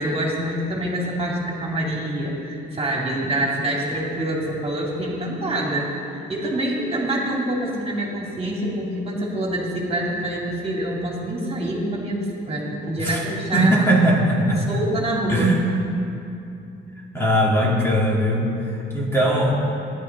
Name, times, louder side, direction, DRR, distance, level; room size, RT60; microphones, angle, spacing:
voice 1, 0.0-6.0 6.3-13.9 14.7-15.5, right 1 dB, 30° right, -3 dB, 2.4 m, -26 dB
voice 2, 13.5-14.8 15.3-15.6 17.1-19.5, right 1 dB, 10° left, -4 dB, 2.0 m, -20 dB
13.0 x 10.5 x 4.1 m, 2.6 s
cardioid pair, 90°, 20 cm